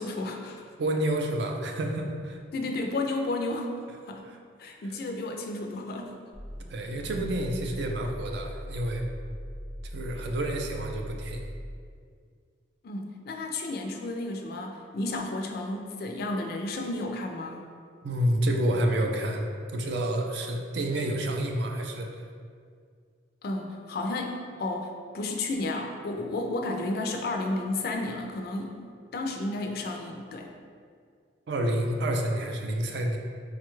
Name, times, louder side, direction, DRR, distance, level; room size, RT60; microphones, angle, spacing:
voice 1, 0.0-0.6 2.5-3.8 4.1-4.2 4.6-6.2 12.8-17.6 23.4-28.8 29.1-30.5, left 2 dB, 50° left, 3 dB, 0.3 m, -32 dB
voice 2, 0.8-2.4 4.2-4.4 4.8-5.0 6.7-9.1 9.9-11.4 18.0-19.5 19.7-22.1 31.5-33.2, right 1 dB, 60° right, 2 dB, 0.4 m, -29 dB
sound 1, 6.3-11.9, equal, 85° right, 0.8 m, -40 dB
4.8 x 2.3 x 3.0 m, 2.1 s
head